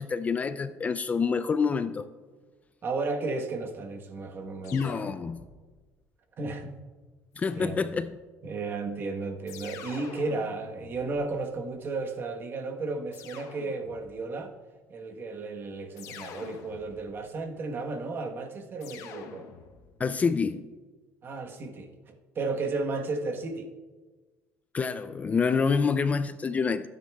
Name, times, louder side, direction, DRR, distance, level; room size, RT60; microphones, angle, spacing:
voice 1, 0.0-2.1 4.7-5.4 7.4-8.2 20.0-20.6 24.7-26.9, left 5 dB, 25° left, 12 dB, 0.3 m, -27 dB
voice 2, 2.8-4.9 6.4-6.8 7.5-7.8 8.4-14.5 14.9-19.5 21.2-23.7, right 3 dB, 40° right, 4 dB, 1.2 m, -34 dB
sound 1, 4.6-5.8 7.4-8.2 9.5-11.8 13.1-14.2 16.0-17.3 18.8-20.0, left 7 dB, 70° left, 1.0 m, -46 dB
15.5 x 9.3 x 2.3 m, 1.3 s
cardioid pair, 115°, 6 cm